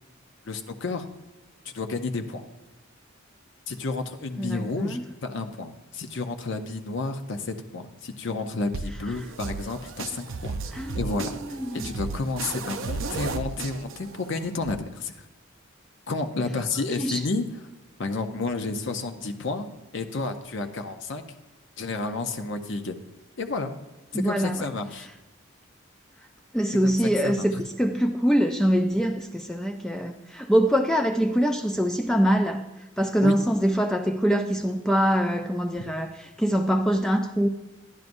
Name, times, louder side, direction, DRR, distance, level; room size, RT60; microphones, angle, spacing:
voice 1, 0.5-1.1 1.6-2.4 3.7-11.6 11.8-15.3 16.1-17.6 18.0-19.7 19.9-21.2 21.8-23.0 23.4-23.7 24.1-25.1 26.8-26.9 27.2-27.5 33.2-33.3, left 3 dB, 60° left, 7 dB, 0.6 m, -31 dB
voice 2, 4.4-5.0 10.7-11.9 17.0-17.2 24.1-24.8 26.5-32.6 33.0-37.5, equal, 5° left, 5 dB, 0.3 m, -24 dB
sound 1, 8.7-14.7, right 3 dB, 70° right, 0.6 m, -34 dB
12.0 x 10.5 x 2.6 m, 1.1 s
head